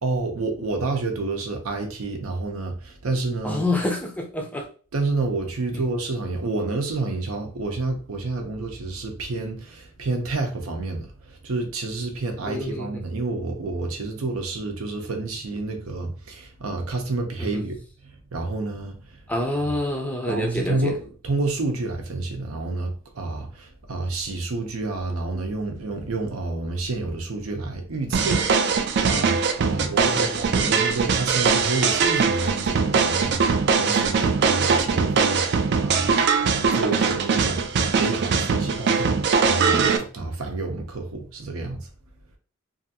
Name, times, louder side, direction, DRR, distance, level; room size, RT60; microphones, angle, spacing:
voice 1, 0.0-3.6 4.9-17.8 18.0-19.2 20.3-39.2 39.4-41.9, right 3 dB, 85° right, 0.7 m, -29 dB
voice 2, 3.4-4.7 5.7-5.8 12.5-13.0 17.4-17.6 19.3-20.9 30.0-30.4, left 1 dB, 5° left, 0.4 m, -27 dB
sound 1, 28.1-40.0, right 5 dB, 55° right, 0.4 m, -21 dB
2.7 x 2.5 x 2.7 m
head